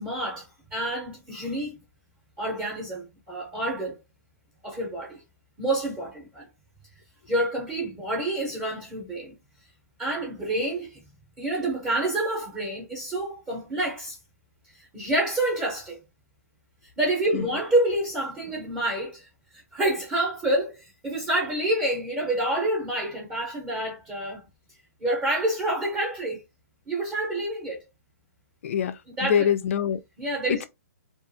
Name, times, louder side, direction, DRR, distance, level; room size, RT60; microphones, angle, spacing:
voice 1, 0.0-1.8 2.4-4.0 4.6-5.2 5.6-6.5 7.3-9.4 10.0-11.1 11.4-14.2 14.9-16.0 17.0-19.3 19.5-24.5 25.0-26.4 26.9-27.8 29.2-29.5 30.2-30.6, right 1 dB, 15° right, 0.7 m, -28 dB
voice 2, 28.6-30.0 30.5-30.6, left 8 dB, 55° left, 0.4 m, -25 dB
2.5 x 2.4 x 2.6 m
hypercardioid pair, 155°, 9 cm